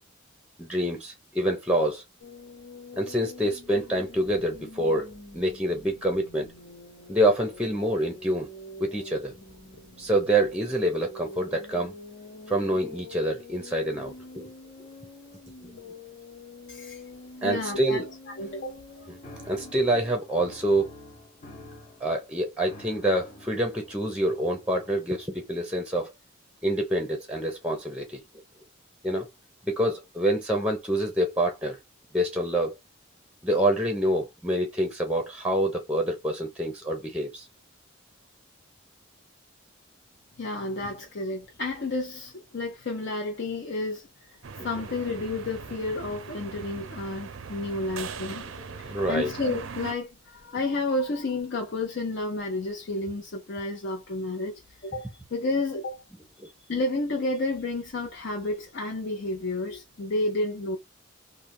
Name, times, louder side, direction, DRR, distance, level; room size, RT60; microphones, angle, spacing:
voice 1, 0.6-2.0 2.9-6.5 7.1-8.5 8.8-9.3 10.0-11.9 12.5-14.5 15.6-15.7 17.4-18.0 19.5-20.9 22.0-26.1 26.6-28.2 29.0-29.3 29.7-31.8 32.1-32.8 33.4-37.4 48.8-49.3 56.4-56.5, right 1 dB, 5° right, 0.6 m, -26 dB
sound 1, 2.2-19.8, left 2 dB, 80° left, 1.2 m, -46 dB
voice 2, 16.7-17.0 17.4-19.1 40.4-44.4 44.6-48.5 48.8-56.1 56.7-60.8, left 2 dB, 60° left, 0.6 m, -31 dB
sound 2, 19.2-25.7, left 1 dB, 35° left, 0.9 m, -48 dB
sound 3, 44.4-49.9, right 5 dB, 75° right, 0.5 m, -40 dB
3.2 x 2.1 x 2.5 m
head